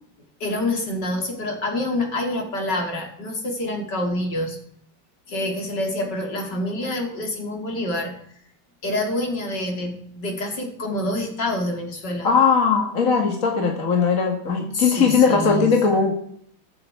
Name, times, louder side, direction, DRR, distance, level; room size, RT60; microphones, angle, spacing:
voice 1, 0.4-4.6 5.3-8.1 8.8-12.3 14.7-15.7, left 1 dB, 65° left, 2 dB, 3.2 m, -27 dB
voice 2, 12.2-16.1, left 5 dB, 45° left, 2 dB, 2.0 m, -19 dB
21.5 x 7.7 x 4.7 m, 0.65 s
omnidirectional pair, 2.0 m